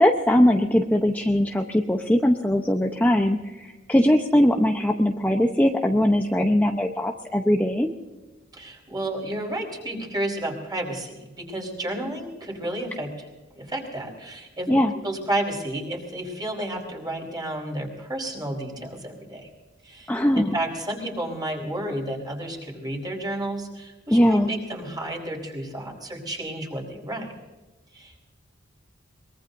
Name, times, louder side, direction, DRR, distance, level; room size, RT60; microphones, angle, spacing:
voice 1, 0.0-7.9 14.7-14.9 20.1-20.5 24.1-24.5, left 1 dB, 10° left, 2 dB, 0.8 m, -20 dB
voice 2, 8.5-14.7 15.0-19.5 19.8-27.3 27.9-28.2, right 1 dB, 20° right, 0 dB, 4.2 m, -32 dB
23.5 x 22.0 x 2.6 m, 1.2 s
head